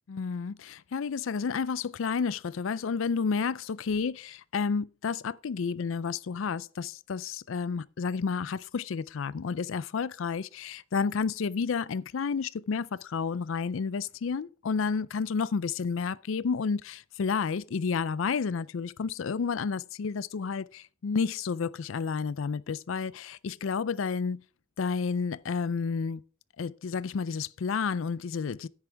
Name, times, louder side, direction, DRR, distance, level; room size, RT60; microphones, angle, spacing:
voice 1, 0.1-24.4 24.8-26.2 26.6-28.7, left 5 dB, 70° left, 0.4 m, -31 dB
9.8 x 9.5 x 3.4 m
head